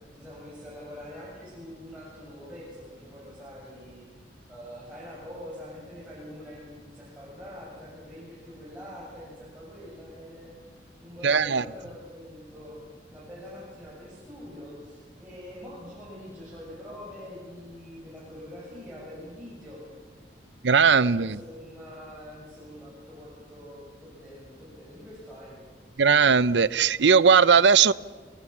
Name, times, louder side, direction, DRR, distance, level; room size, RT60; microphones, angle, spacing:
voice 1, 0.2-4.0 4.5-12.8 13.1-19.8 20.9-25.6, left 1 dB, 10° right, 7.7 m, -44 dB
voice 2, 11.2-11.6 20.6-21.3 26.0-27.9, right 6 dB, 80° right, 0.6 m, -18 dB
27.5 x 23.0 x 7.3 m
head